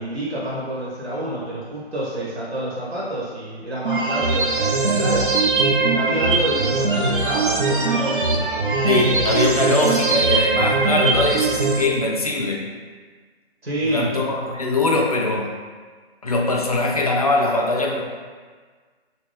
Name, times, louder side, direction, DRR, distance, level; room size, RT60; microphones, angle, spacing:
voice 1, 0.0-5.3 5.8-8.5 13.6-14.1, right 1 dB, 80° right, -6 dB, 1.3 m, -28 dB
sound 1, 3.8-11.8, right 3 dB, 55° right, 0.5 m, -20 dB
voice 2, 8.8-12.7 13.8-15.5 16.2-18.0, left 2 dB, 40° left, -1 dB, 0.4 m, -21 dB
3.0 x 2.7 x 3.3 m, 1.5 s
figure-of-eight pair, 145°, 32 cm